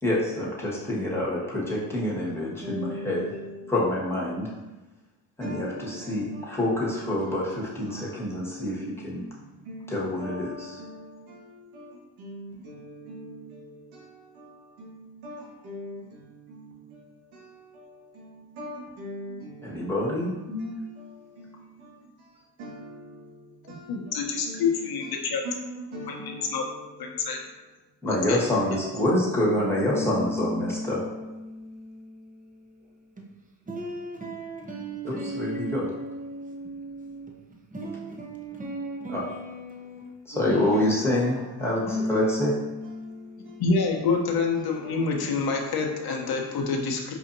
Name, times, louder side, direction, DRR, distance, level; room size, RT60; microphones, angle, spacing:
voice 1, 0.0-3.2 3.7-4.5 5.4-9.2 9.9-10.8 19.6-20.7 28.0-31.0 35.0-35.9 39.1-39.2 40.3-42.5, left 1 dB, 5° left, -6 dB, 1.4 m, -27 dB
voice 2, 2.4-3.7 5.4-22.3 22.6-27.4 40.3-41.3 41.6-42.1 42.8-43.6 44.6-45.2 45.9-46.7, equal, 85° right, -3 dB, 1.1 m, -43 dB
voice 3, 23.6-25.4 26.1-26.2 26.5-26.6 27.0-27.4 28.1-28.4 43.6-47.1, left 4 dB, 50° left, 1 dB, 0.8 m, -27 dB
voice 4, 29.9-32.8 33.2-33.3 33.7-40.1 40.5-41.5 41.9-43.6 45.2-45.3, equal, 15° right, -1 dB, 0.8 m, -35 dB
4.8 x 2.7 x 2.6 m, 1.1 s
supercardioid pair, 70°, 48 cm